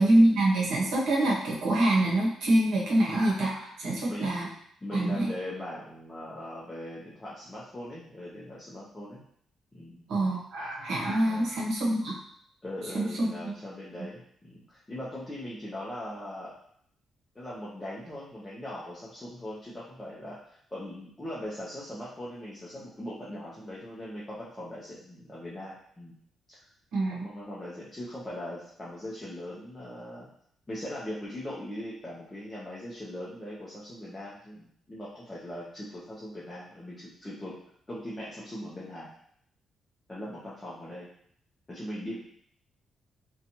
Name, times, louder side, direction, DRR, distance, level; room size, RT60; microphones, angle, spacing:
voice 1, 0.0-4.5 4.9-5.3 10.1-12.1 12.9-13.5 26.9-27.3, right 1 dB, 80° right, -3 dB, 0.8 m, -25 dB
voice 2, 4.8-9.2 9.7-10.1 11.2-11.5 12.6-16.6 17.3-26.1 26.5-26.6 27.1-30.3 30.7-37.6 37.9-39.1 40.1-41.1 41.7-42.2, left 1 dB, 15° left, -7 dB, 0.5 m, -40 dB
2.7 x 2.2 x 2.8 m, 0.67 s
cardioid pair, 150°, 0 cm